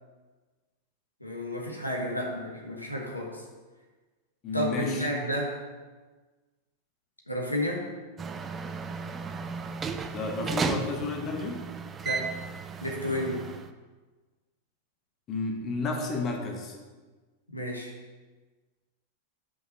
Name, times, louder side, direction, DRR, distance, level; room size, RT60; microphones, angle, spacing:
voice 1, 1.2-3.4 4.5-5.6 7.3-7.9 12.0-12.3 12.8-13.4 17.5-17.9, equal, 85° left, -1 dB, 1.3 m, -31 dB
voice 2, 4.4-5.1 10.1-11.6 15.3-16.8, left 3 dB, 30° left, 2 dB, 1.3 m, -31 dB
sound 1, 8.2-13.7, right 5 dB, 20° right, 0.5 m, -34 dB
6.1 x 5.4 x 6.5 m, 1.3 s
figure-of-eight pair, 90°, 0 cm